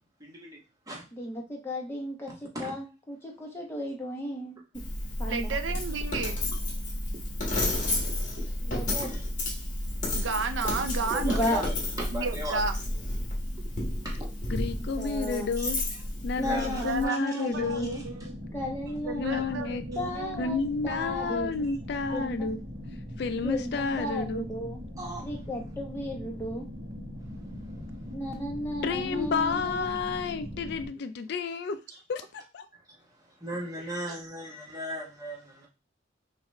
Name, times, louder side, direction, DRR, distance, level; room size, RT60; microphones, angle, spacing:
voice 1, 0.2-0.6 0.9-1.0 2.5-2.8 9.0-9.2 10.7-12.6 14.0-14.3 15.6-15.7 16.4-18.3 25.0-25.3 31.9-32.0 33.4-35.7, right 1 dB, 20° right, 1.1 m, -38 dB
voice 2, 1.1-4.6 5.2-5.6 8.6-9.1 11.2-11.6 14.8-15.5 16.4-18.0 18.5-19.4 19.9-21.5 22.1-22.5 23.4-24.8 25.2-26.7 28.1-29.9, equal, 15° left, 1.0 m, -34 dB
Coin (dropping), 4.7-17.0, left 1 dB, 40° left, 1.5 m, -31 dB
voice 3, 5.2-6.4 10.1-11.7 12.1-12.7 16.7-18.4 19.0-20.8 21.1-21.8 22.1-22.3, right 4 dB, 75° right, 0.5 m, -33 dB
voice 4, 14.5-15.8 16.2-17.9 19.1-19.8 20.4-22.6 23.2-24.5 28.8-31.8 32.1-32.7, left 5 dB, 60° left, 0.3 m, -31 dB
sound 1, 17.5-30.9, left 1 dB, 50° right, 0.9 m, -41 dB
5.8 x 2.4 x 3.2 m
head